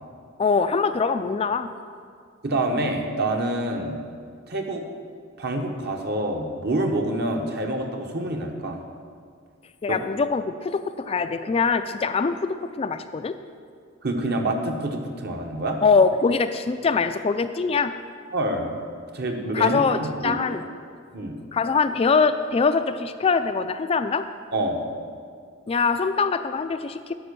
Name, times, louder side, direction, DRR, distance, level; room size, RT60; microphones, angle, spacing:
voice 1, 0.4-1.7 9.8-13.3 15.8-17.9 19.5-20.6 21.5-24.2 25.7-27.1, left 5 dB, 30° left, 9 dB, 0.3 m, -23 dB
voice 2, 2.4-4.0 4.5-4.8 5.4-8.8 9.9-10.0 14.0-15.8 18.3-18.8 19.1-20.6 21.1-21.4 24.5-24.9, right 1 dB, 55° right, 3 dB, 1.1 m, -27 dB
11.0 x 5.4 x 6.8 m, 2.1 s
head